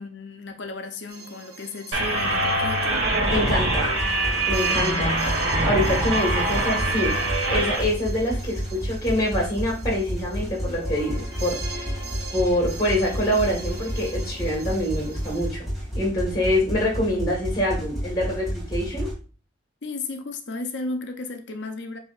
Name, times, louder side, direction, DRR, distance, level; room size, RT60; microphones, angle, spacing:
voice 1, 0.0-3.0 19.8-22.0, left 3 dB, 60° left, 0.6 m, -34 dB
sound 1, 1.1-15.5, right 3 dB, 55° right, 0.9 m, -41 dB
sound 2, 1.9-7.8, right 2 dB, 70° right, 1.5 m, -24 dB
sound 3, 3.2-19.1, equal, ahead, 1.9 m, -31 dB
voice 2, 3.3-3.9 4.5-5.3 5.6-7.1 7.5-11.9 12.3-15.6 15.9-19.1, left 1 dB, 20° left, 1.4 m, -25 dB
7.8 x 2.7 x 2.4 m
head